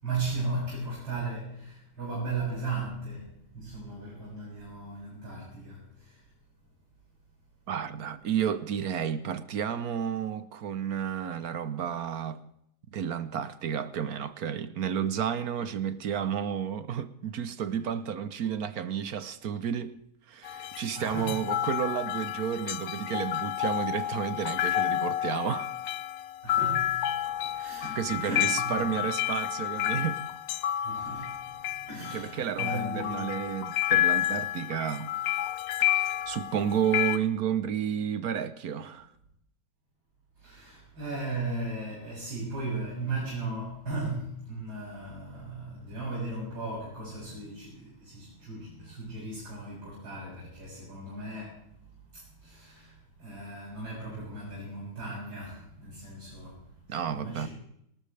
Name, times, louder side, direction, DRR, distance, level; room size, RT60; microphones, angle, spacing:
voice 1, 0.0-6.3 21.0-21.4 26.4-27.0 27.3-28.9 30.8-31.4 31.9-33.4 40.4-51.7 52.1-57.5, right 3 dB, 75° right, 8.3 m, -37 dB
voice 2, 7.7-12.4 12.9-20.0 20.3-25.7 27.6-30.2 32.1-35.1 35.8-39.1 56.9-57.5, right 8 dB, 60° right, 1.1 m, -31 dB
sound 1, 20.4-37.2, left 13 dB, 70° left, 1.4 m, -30 dB
19.5 x 19.0 x 3.3 m
omnidirectional pair, 2.2 m